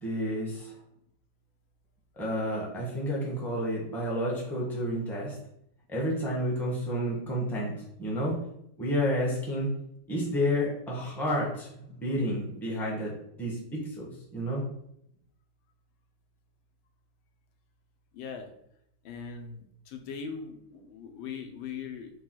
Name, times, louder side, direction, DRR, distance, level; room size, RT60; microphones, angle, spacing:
voice 1, 0.0-0.7 2.2-5.3 5.9-7.7 8.0-8.3 8.8-9.7 10.1-13.1 13.4-14.6, equal, ahead, -4 dB, 0.7 m, -30 dB
voice 2, 18.1-18.5 19.0-22.1, left 6 dB, 90° left, 5 dB, 1.5 m, -40 dB
4.8 x 2.2 x 4.4 m, 0.74 s
omnidirectional pair, 2.1 m